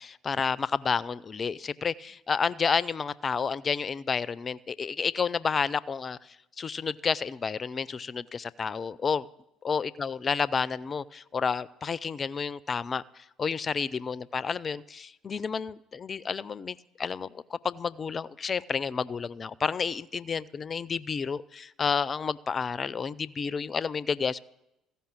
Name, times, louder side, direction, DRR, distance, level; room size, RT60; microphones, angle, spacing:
voice 1, 0.0-6.2 6.6-9.3 9.6-24.4, left 5 dB, 35° left, 20 dB, 0.4 m, -30 dB
15.0 x 5.5 x 8.8 m, 0.90 s
figure-of-eight pair, 55°, 0 cm